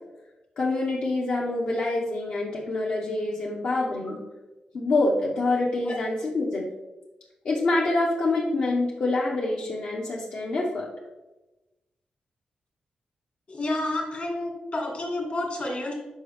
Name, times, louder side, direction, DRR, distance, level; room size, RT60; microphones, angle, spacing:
voice 1, 0.6-4.2 4.7-6.7 7.4-10.9, left 2 dB, 65° left, -5 dB, 0.9 m, -26 dB
voice 2, 13.5-15.9, left 1 dB, 45° left, 0 dB, 1.8 m, -30 dB
5.8 x 4.7 x 3.4 m, 1.1 s
cardioid pair, 80°, 3 cm